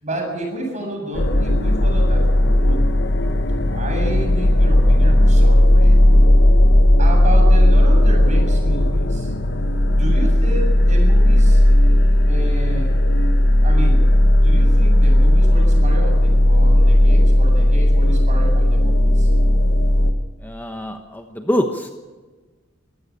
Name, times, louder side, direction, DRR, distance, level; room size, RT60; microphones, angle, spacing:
voice 1, 0.0-2.8 3.7-6.0 7.0-9.3 9.8-11.6 12.3-13.0 13.6-19.3, right 1 dB, 40° right, 2 dB, 7.5 m, -30 dB
sound 1, 1.1-20.1, left 1 dB, 60° left, 1.4 m, -14 dB
voice 2, 20.4-21.9, equal, 10° left, 5 dB, 1.2 m, -24 dB
24.0 x 15.5 x 7.5 m, 1.3 s
head